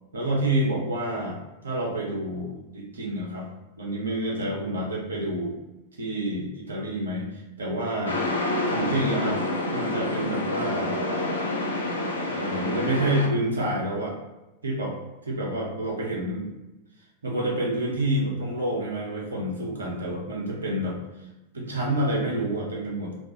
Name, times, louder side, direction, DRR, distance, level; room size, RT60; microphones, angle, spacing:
voice 1, 0.1-3.5 3.8-5.5 6.0-8.2 8.7-9.4 9.7-10.9 12.3-14.2 14.6-15.0 15.2-16.5 17.2-21.0 21.5-23.1, right 1 dB, 75° right, -3 dB, 0.7 m, -28 dB
sound 1, 8.1-13.3, left 2 dB, 70° left, 0.4 m, -28 dB
2.4 x 2.2 x 2.8 m, 1.0 s
figure-of-eight pair, 90°, 0 cm